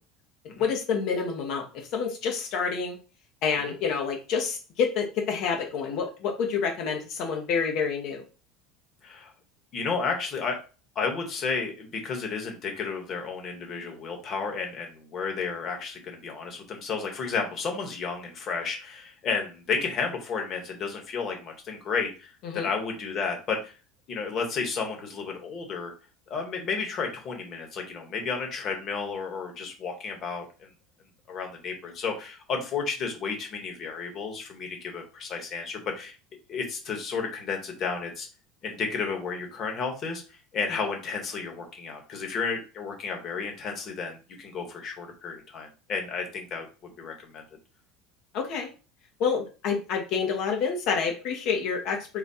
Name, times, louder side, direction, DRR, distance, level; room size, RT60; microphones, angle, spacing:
voice 1, 0.6-3.0 3.4-8.2 22.4-22.7 48.3-48.7 49.2-52.2, left 6 dB, 55° left, 2 dB, 1.0 m, -28 dB
voice 2, 9.7-10.6 10.9-23.7 24.1-25.9 26.3-30.7 31.3-36.1 36.5-38.3 38.6-40.2 40.5-47.4, left 5 dB, 35° left, 3 dB, 1.3 m, -32 dB
4.0 x 2.4 x 4.2 m, 0.34 s
supercardioid pair, 140°, 0 cm